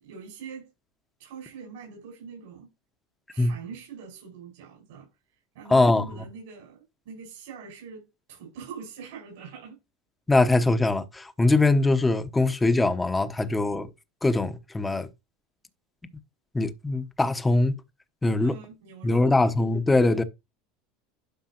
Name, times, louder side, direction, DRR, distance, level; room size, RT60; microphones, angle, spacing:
voice 1, 0.0-0.7 1.2-2.7 3.3-5.1 5.5-9.8 18.4-19.4, right 6 dB, 75° right, 5.4 m, -43 dB
voice 2, 5.7-6.0 10.3-13.9 14.2-15.1 16.5-17.7 18.2-18.5 19.0-20.2, left 2 dB, 15° left, 0.9 m, -22 dB
11.5 x 5.4 x 2.9 m
hypercardioid pair, 95°, 0 cm